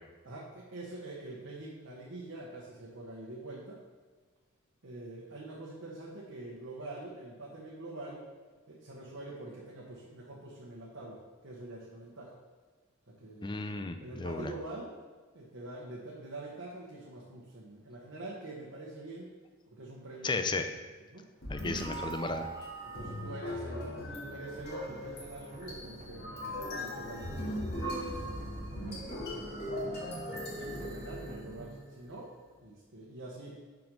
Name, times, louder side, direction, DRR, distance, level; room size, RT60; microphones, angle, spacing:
voice 1, 0.2-3.8 4.8-8.2 8.7-12.3 13.1-13.5 14.0-14.9 15.3-19.3 19.7-20.5 21.1-21.3 22.8-24.0 24.2-28.4 28.8-30.0 30.5-32.3 32.6-33.6, right 2 dB, 65° right, -4 dB, 1.1 m, -45 dB
voice 2, 13.4-14.5 20.2-20.7 21.5-22.5, left 3 dB, 20° left, 8 dB, 0.4 m, -34 dB
sound 1, 21.4-31.7, equal, 50° left, 2.1 m, -39 dB
sound 2, 24.1-31.8, right 2 dB, 35° right, 0.8 m, -48 dB
6.0 x 5.1 x 5.3 m, 1.4 s
head